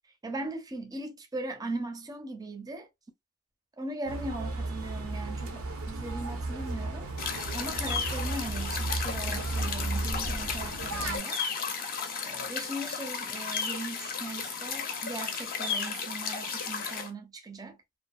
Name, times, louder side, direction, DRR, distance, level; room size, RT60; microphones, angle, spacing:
voice 1, 0.2-2.9 3.8-7.1 7.5-11.4 12.2-17.8, right 2 dB, 20° right, 0.5 m, -39 dB
sound 1, 4.1-11.2, right 2 dB, 80° right, 0.7 m, -34 dB
sound 2, 7.2-17.1, left 6 dB, 40° left, 0.5 m, -34 dB
2.7 x 2.3 x 2.3 m
head